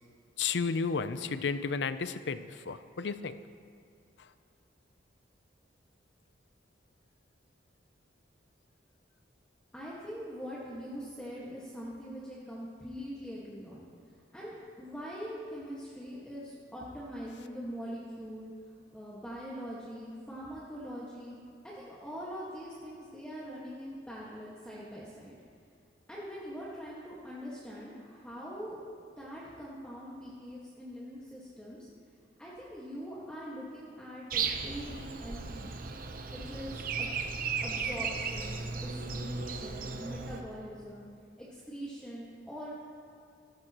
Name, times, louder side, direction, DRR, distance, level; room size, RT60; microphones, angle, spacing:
voice 1, 0.4-2.4 2.7-3.4, left 5 dB, 70° left, 12 dB, 0.5 m, -32 dB
voice 2, 9.7-13.8 14.3-18.5 18.9-21.4 21.6-25.4 26.1-28.8 29.2-31.9 32.4-35.7 36.3-37.1 37.6-41.1 41.4-42.7, equal, 5° left, -8 dB, 1.6 m, -43 dB
Breathing, 34.3-40.4, right 5 dB, 50° right, 0.8 m, -35 dB
16.0 x 14.5 x 3.0 m, 2.3 s
head